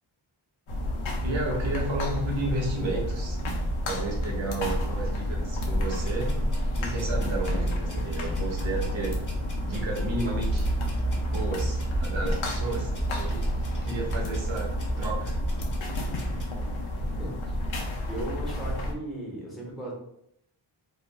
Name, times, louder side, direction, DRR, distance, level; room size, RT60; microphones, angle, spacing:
sound 1, 0.7-18.9, left 1 dB, 80° left, 0.6 m, -31 dB
sound 2, 0.7-16.4, right 1 dB, 25° right, 0.6 m, -33 dB
voice 1, 1.2-3.4 3.8-6.4 6.8-9.2 9.6-10.7 11.2-13.5 13.8-15.4, right 2 dB, 75° right, -1 dB, 0.9 m, -32 dB
sound 3, 6.0-16.5, right 1 dB, 40° left, 1.0 m, -44 dB
voice 2, 18.1-19.9, right 1 dB, ahead, -5 dB, 1.2 m, -36 dB
3.0 x 2.4 x 2.2 m, 0.73 s
wide cardioid pair, 65°, 47 cm